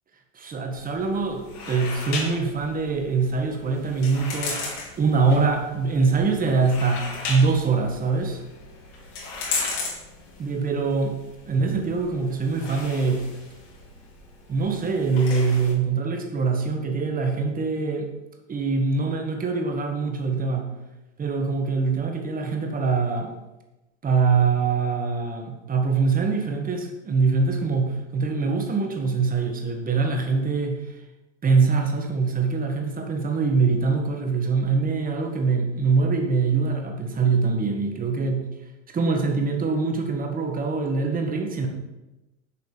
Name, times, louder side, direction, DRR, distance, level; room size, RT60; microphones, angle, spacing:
voice 1, 0.3-4.6 5.0-8.4 10.4-11.2 11.5-13.2 14.5-18.1 18.5-20.7 21.2-23.3 24.0-30.9 31.4-38.4 38.9-41.7, right 4 dB, 20° right, 3 dB, 1.3 m, -23 dB
sound 1, 0.7-15.7, left 3 dB, 65° left, 2.7 m, -36 dB
7.0 x 4.1 x 6.6 m, 1.0 s
supercardioid pair, 120°, 38 cm